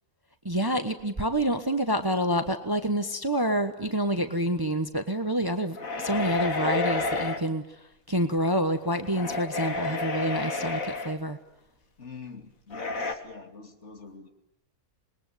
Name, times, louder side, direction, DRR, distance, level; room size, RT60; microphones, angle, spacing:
voice 1, 0.4-11.4, right 1 dB, 15° right, 8 dB, 1.2 m, -28 dB
sound 1, 5.8-7.4 9.0-11.2 12.7-13.1, left 3 dB, 75° left, 2.4 m, -30 dB
voice 2, 12.0-14.3, left 5 dB, 55° left, 5 dB, 2.9 m, -44 dB
27.0 x 21.0 x 9.3 m, 0.84 s
omnidirectional pair, 1.5 m